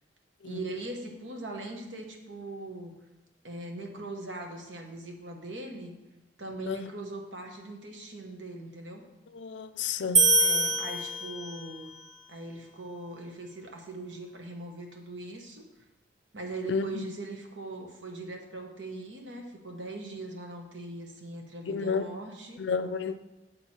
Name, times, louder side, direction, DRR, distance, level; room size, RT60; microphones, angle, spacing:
voice 1, 0.4-3.0 3.4-5.9 6.4-9.0 10.4-12.0 12.3-15.7 16.3-22.6, right 2 dB, 90° right, 2 dB, 1.3 m, -40 dB
voice 2, 9.3-10.3 16.7-17.1 21.7-22.1 22.6-23.2, left 5 dB, 70° left, 12 dB, 0.4 m, -31 dB
sound 1, 10.1-11.8, right 3 dB, 25° right, 0.6 m, -24 dB
7.4 x 6.4 x 4.3 m, 1.1 s
head